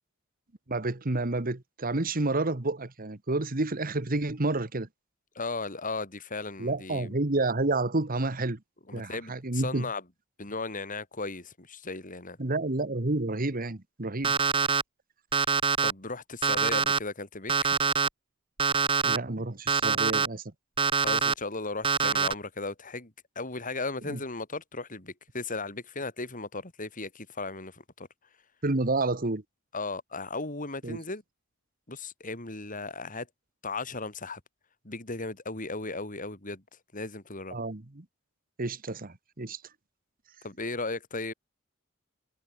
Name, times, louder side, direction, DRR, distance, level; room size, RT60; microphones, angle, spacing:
voice 1, 0.7-4.9 6.6-8.6 8.9-9.9 12.4-14.4 19.0-20.4 24.1-24.2 28.6-29.4 30.8-31.0 37.5-38.0 38.6-39.6, right 2 dB, 45° right, 1.5 m, -29 dB
voice 2, 5.4-7.1 8.9-10.0 10.4-12.4 15.8-17.8 21.0-28.1 29.7-31.2 31.9-33.3 33.6-34.4 34.8-36.6 36.9-37.6 40.4-41.3, left 3 dB, 40° left, 5.3 m, -36 dB
Alarm, 14.2-14.8 15.3-15.9 16.4-17.0 17.5-18.1 18.6-19.2 19.7-20.3 20.8-21.3 21.8-22.3, right 5 dB, 25° right, 0.9 m, -24 dB
head